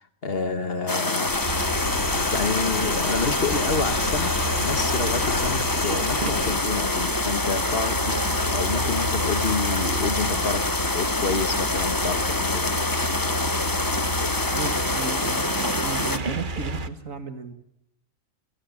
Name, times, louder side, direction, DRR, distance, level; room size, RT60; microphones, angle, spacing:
voice 1, 0.0-1.3 2.3-4.3 4.6-8.1 8.4-12.6, left 4 dB, 45° left, 11 dB, 1.5 m, -29 dB
sound 1, 0.9-16.2, left 2 dB, 15° left, 1.0 m, -26 dB
sound 2, 1.3-6.6, left 2 dB, 60° left, 3.0 m, -32 dB
sound 3, 1.4-16.9, right 1 dB, 40° right, 1.2 m, -32 dB
voice 2, 14.5-17.5, right 5 dB, 70° right, 9 dB, 2.5 m, -33 dB
29.0 x 17.5 x 7.3 m, 0.81 s
omnidirectional pair, 1.4 m